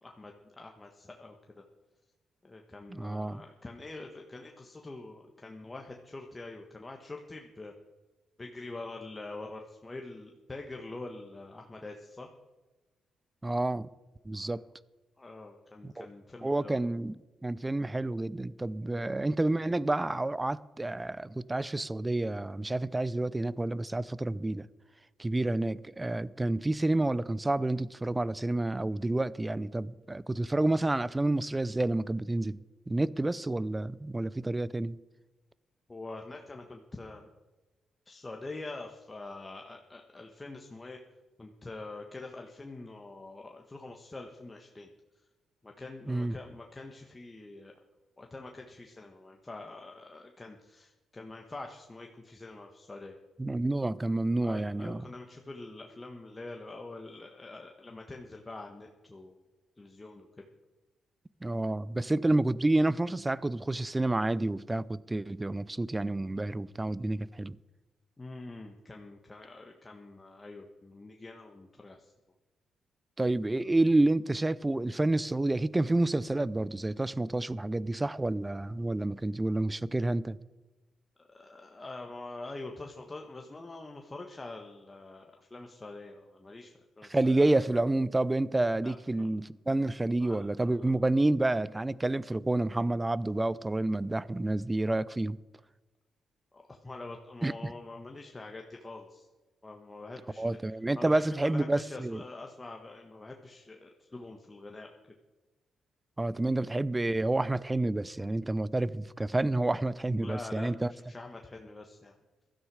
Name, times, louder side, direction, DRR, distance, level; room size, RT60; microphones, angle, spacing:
voice 1, 0.0-1.3 2.4-7.7 8.4-12.3 14.4-14.6 15.2-16.8 18.9-19.0 35.9-37.3 38.1-41.0 41.4-44.9 45.6-47.7 48.2-53.2 54.4-59.4 59.8-60.3 68.2-72.1 81.2-87.6 88.8-89.3 90.2-90.5 90.8-90.9 96.5-99.3 99.6-100.4 101.0-104.9 110.2-112.2, left 2 dB, 20° left, 1.4 m, -45 dB
voice 2, 2.9-3.4 13.4-13.9 14.2-14.6 15.8-16.1 16.4-24.7 25.2-32.6 32.9-35.0 46.1-46.4 53.4-55.1 61.4-67.6 73.2-80.4 87.1-95.4 97.4-97.7 100.4-102.2 106.2-110.9, right 2 dB, 15° right, 0.5 m, -29 dB
16.0 x 13.0 x 4.9 m
cardioid pair, 80°, 0 cm